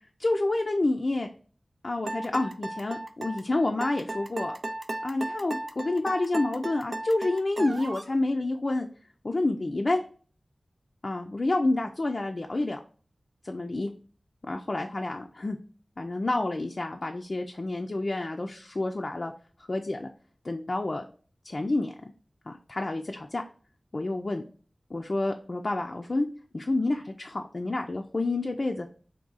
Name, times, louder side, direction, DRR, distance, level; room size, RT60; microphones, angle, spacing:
voice 1, 0.2-1.3 1.8-4.5 5.0-8.9 9.2-10.0 11.0-12.8 13.4-13.9 14.4-15.6 16.0-19.3 19.6-20.1 20.4-21.0 21.4-21.9 22.5-23.4 23.9-24.4 24.9-26.3 26.5-28.9, left 2 dB, 55° left, 3 dB, 0.4 m, -29 dB
sound 1, 2.1-8.1, right 2 dB, 65° right, 0.3 m, -35 dB
3.7 x 2.7 x 3.9 m, 0.41 s
wide cardioid pair, 65°, 0 cm